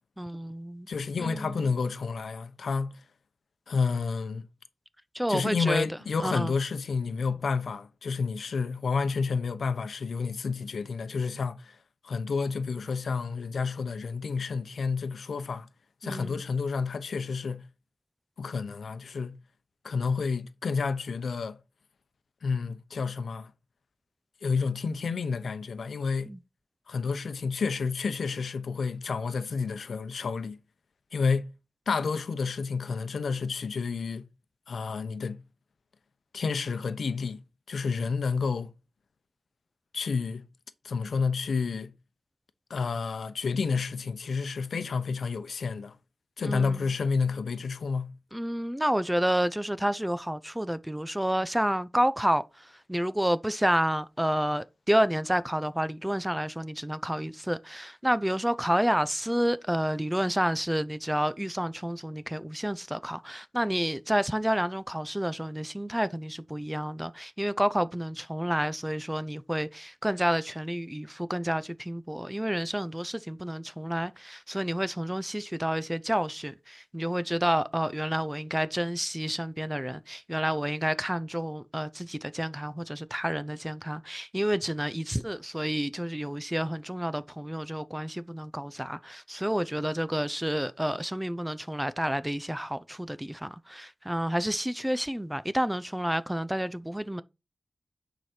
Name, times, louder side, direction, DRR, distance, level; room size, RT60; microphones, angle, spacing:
voice 1, 0.2-0.9 1.2-1.7 5.1-5.9 6.2-6.5 16.0-16.4 26.3-26.4 46.4-46.9 48.3-97.2, equal, 10° right, 0.7 m, -29 dB
voice 2, 0.9-2.9 3.7-4.5 5.3-11.8 12.0-15.7 16.0-17.7 18.4-19.4 19.8-21.6 22.4-23.5 24.4-26.3 26.9-30.6 31.1-31.5 31.9-34.3 34.7-35.4 36.3-37.4 37.7-38.7 39.9-40.5 40.8-41.9 42.7-46.0 46.4-48.1, left 5 dB, 85° left, 0.8 m, -30 dB
9.2 x 5.0 x 4.4 m
cardioid pair, 55°, 0 cm